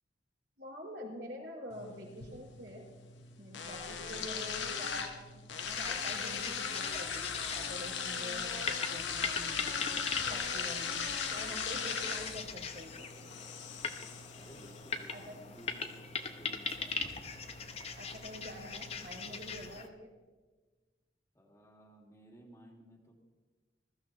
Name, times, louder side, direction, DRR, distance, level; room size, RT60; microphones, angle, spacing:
voice 1, 0.6-2.8 3.4-5.4 5.8-13.1 15.1-15.4 17.9-20.1, equal, 70° right, -4 dB, 5.0 m, -46 dB
sound 1, 1.7-19.7, left 6 dB, 85° left, 1.3 m, -40 dB
voice 2, 4.1-4.6 14.3-17.2 21.3-23.2, equal, 15° left, 0 dB, 1.9 m, -57 dB
sound 2, 5.7-19.9, left 5 dB, 35° left, 0.7 m, -41 dB
21.0 x 14.0 x 3.0 m, 1.3 s
head